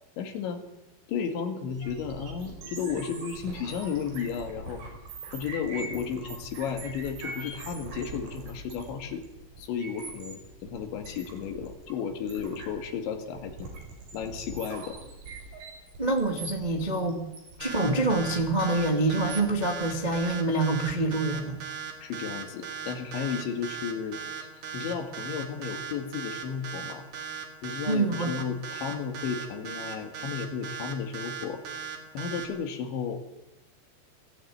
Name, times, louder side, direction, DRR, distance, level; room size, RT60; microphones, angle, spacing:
voice 1, 0.2-0.6 1.1-4.8 5.3-9.3 9.6-13.7 14.1-15.0 22.0-24.2 24.5-27.0 27.6-31.6 32.1-33.2, left 7 dB, 75° left, 5 dB, 4.3 m, -33 dB
sound 1, 1.7-20.3, right 3 dB, 85° right, 7.8 m, -42 dB
voice 2, 16.0-17.2 17.6-21.6 27.9-28.3, right 2 dB, 40° right, 2 dB, 0.6 m, -26 dB
sound 2, 17.6-32.4, right 6 dB, 60° right, 4.7 m, -37 dB
21.5 x 15.5 x 9.3 m, 0.95 s
omnidirectional pair, 5.5 m